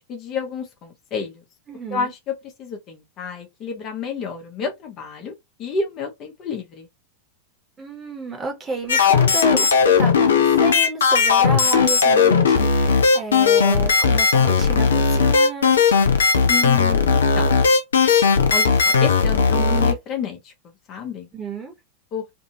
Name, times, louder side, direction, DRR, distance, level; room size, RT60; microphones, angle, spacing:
voice 1, 0.0-1.4 1.9-5.3 5.6-6.9 16.5-17.6 18.5-20.5 20.9-21.3 22.1-22.2, left 5 dB, 35° left, 0.7 m, -29 dB
voice 2, 1.7-2.1 7.8-9.7 10.0-15.8 21.3-21.7, right 3 dB, 20° right, 1.1 m, -31 dB
sound 1, 8.9-19.9, left 5 dB, 65° left, 0.5 m, -17 dB
2.6 x 2.6 x 2.8 m
figure-of-eight pair, 90°, 0 cm